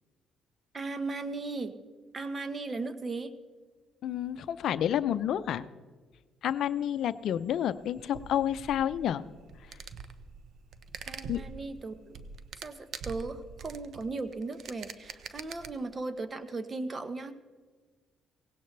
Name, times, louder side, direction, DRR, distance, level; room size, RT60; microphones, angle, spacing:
voice 1, 0.7-1.7 2.1-3.3 11.1-12.2 12.6-17.3, right 3 dB, 35° right, 11 dB, 1.1 m, -37 dB
voice 2, 4.0-5.6 6.4-9.2 11.3-11.4, left 10 dB, 70° left, 14 dB, 0.5 m, -29 dB
sound 1, 7.1-15.7, right 5 dB, 60° right, 0.9 m, -45 dB
17.5 x 17.0 x 3.3 m, 1.4 s
cardioid pair, 85°, 0 cm